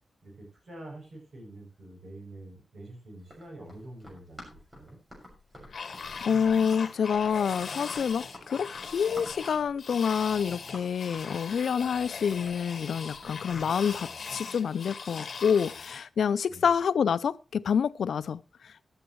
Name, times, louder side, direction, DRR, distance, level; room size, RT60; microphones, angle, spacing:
voice 1, 0.2-4.4 4.8-5.0 16.5-16.7, right 1 dB, 75° right, 7.5 m, -46 dB
Run, 3.2-13.7, left 1 dB, 20° right, 6.3 m, -50 dB
sound 1, 5.7-16.0, left 5 dB, 55° left, 1.9 m, -40 dB
voice 2, 6.3-18.8, left 7 dB, 90° left, 0.6 m, -27 dB
15.0 x 12.5 x 3.2 m
wide cardioid pair, 145°, 0 cm